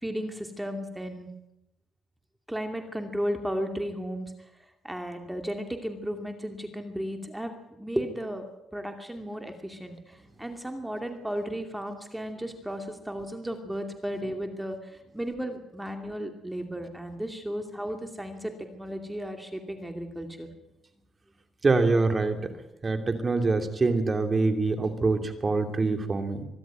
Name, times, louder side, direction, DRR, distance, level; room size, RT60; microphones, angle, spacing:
voice 1, 0.0-1.3 2.5-4.5 4.8-8.5 8.7-20.5, equal, 5° right, 5 dB, 2.6 m, -34 dB
voice 2, 21.6-22.5 22.8-26.4, right 3 dB, 30° right, 7 dB, 2.9 m, -25 dB
24.0 x 12.0 x 9.1 m, 0.90 s
cardioid pair, 90°, 0 cm